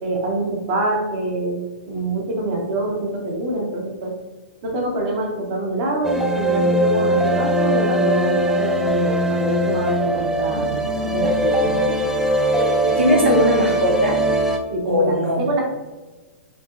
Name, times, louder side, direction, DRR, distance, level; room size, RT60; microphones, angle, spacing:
voice 1, 0.0-1.6 1.9-4.1 4.6-12.0 14.7-15.6, right 2 dB, 45° right, 0 dB, 1.1 m, -25 dB
sound 1, 6.0-14.6, right 1 dB, 5° right, 0.4 m, -20 dB
voice 2, 12.8-14.2 14.8-15.5, left 1 dB, 75° right, -2 dB, 0.9 m, -19 dB
5.0 x 2.9 x 2.5 m, 1.2 s
figure-of-eight pair, 110°, 7 cm